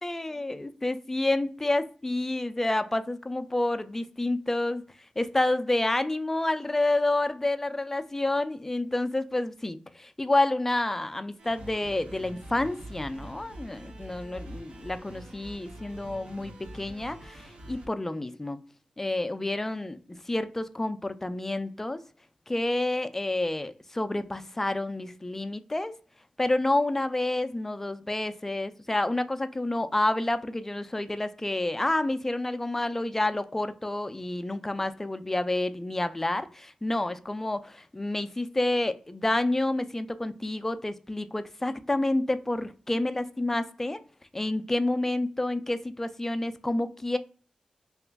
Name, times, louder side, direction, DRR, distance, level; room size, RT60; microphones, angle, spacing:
voice 1, 0.0-4.8 5.2-18.6 19.0-22.0 22.5-26.0 26.4-44.0 44.3-47.2, left 2 dB, 15° left, 11 dB, 0.3 m, -29 dB
sound 1, 11.4-17.9, right 1 dB, 65° right, 0.7 m, -45 dB
2.9 x 2.4 x 3.4 m, 0.42 s
wide cardioid pair, 90°, 2 cm